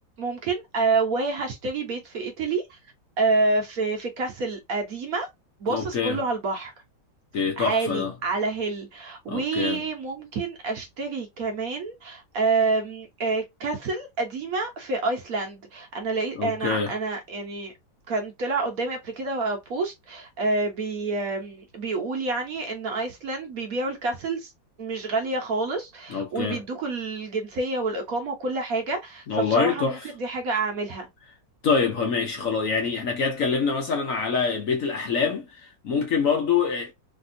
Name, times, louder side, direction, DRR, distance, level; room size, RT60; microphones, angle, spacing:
voice 1, 0.2-2.8 3.2-5.3 5.6-6.7 7.6-17.7 18.1-24.5 24.8-31.1, right 3 dB, 60° right, 1.2 m, -28 dB
voice 2, 5.7-6.2 7.3-8.1 9.3-9.9 16.4-16.9 26.1-26.6 29.3-30.1 31.6-36.9, left 5 dB, 60° left, 1.0 m, -25 dB
3.3 x 2.6 x 2.5 m
omnidirectional pair, 1.9 m